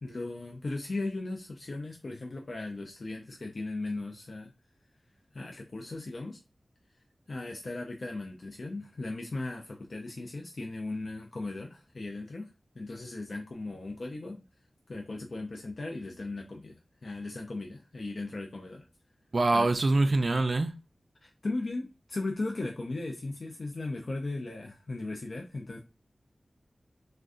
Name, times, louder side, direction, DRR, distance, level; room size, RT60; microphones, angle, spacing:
voice 1, 0.0-4.5 5.3-6.4 7.3-12.5 12.8-14.5 14.9-18.9 19.5-19.7 21.2-25.8, left 2 dB, 60° left, 0.5 m, -37 dB
voice 2, 19.3-20.7, right 2 dB, 55° right, 0.3 m, -24 dB
3.6 x 2.2 x 2.5 m
wide cardioid pair, 75°, 0 cm